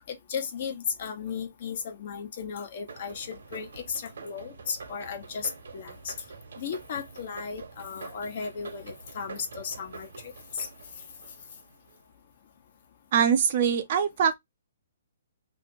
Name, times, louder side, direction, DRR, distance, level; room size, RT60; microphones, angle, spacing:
voice 1, 0.1-6.1 6.6-10.7, left 6 dB, 45° left, 1.0 m, -35 dB
sound 1, 2.9-12.0, right 4 dB, 80° right, 1.0 m, -46 dB
voice 2, 13.1-14.3, right 7 dB, 45° right, 0.5 m, -23 dB
2.8 x 2.8 x 4.3 m
hypercardioid pair, 160°, 0 cm